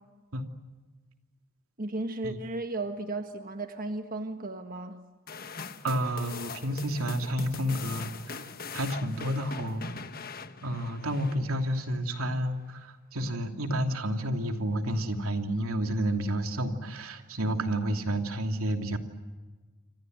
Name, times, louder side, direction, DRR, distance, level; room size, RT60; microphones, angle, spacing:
voice 1, 1.8-5.0, right 2 dB, 40° right, 6 dB, 1.6 m, -35 dB
sound 1, 5.3-11.8, left 5 dB, 45° left, 1.5 m, -41 dB
voice 2, 5.8-8.5 8.7-9.9 10.6-19.0, right 1 dB, 80° right, 5 dB, 3.0 m, -30 dB
28.5 x 25.5 x 8.0 m, 1.3 s
head